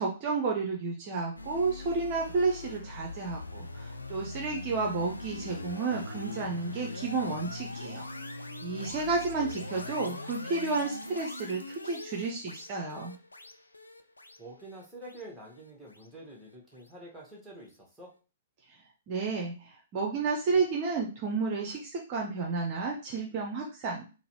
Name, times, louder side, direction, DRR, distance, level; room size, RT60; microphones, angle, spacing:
voice 1, 0.0-8.1 8.6-13.1 19.1-24.1, right 4 dB, 35° right, 0 dB, 0.6 m, -31 dB
sound 1, 1.4-16.5, left 2 dB, 80° left, 0.4 m, -42 dB
voice 2, 9.3-9.9 14.4-18.1, right 1 dB, ahead, -3 dB, 1.2 m, -48 dB
3.8 x 2.0 x 2.9 m, 0.33 s
figure-of-eight pair, 115°, 0 cm